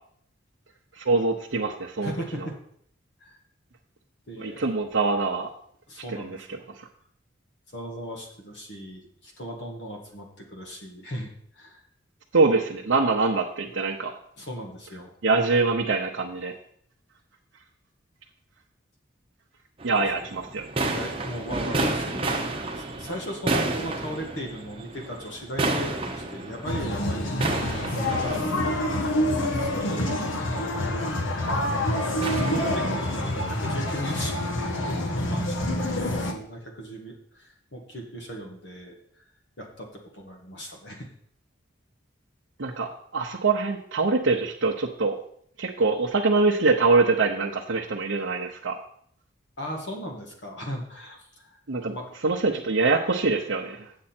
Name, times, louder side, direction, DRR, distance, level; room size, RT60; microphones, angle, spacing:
voice 1, 1.0-2.1 4.4-5.5 6.2-6.4 12.3-14.1 15.2-16.5 19.8-20.7 42.6-45.2 45.6-48.8 51.7-51.9 52.2-53.9, right 3 dB, 80° right, -1 dB, 0.8 m, -24 dB
voice 2, 2.0-2.6 3.2-3.4 4.3-4.7 5.9-6.6 7.7-11.8 13.7-13.8 14.4-15.1 20.9-22.5 22.7-27.3 27.7-30.7 32.2-35.6 35.9-39.3 39.6-41.1 49.6-51.6 51.9-52.1, equal, 60° left, 1 dB, 1.6 m, -37 dB
sound 1, 19.8-33.5, right 2 dB, 30° right, 0.9 m, -32 dB
sound 2, 26.6-36.3, left 1 dB, 80° left, 1.2 m, -27 dB
8.6 x 7.6 x 4.4 m, 0.64 s
head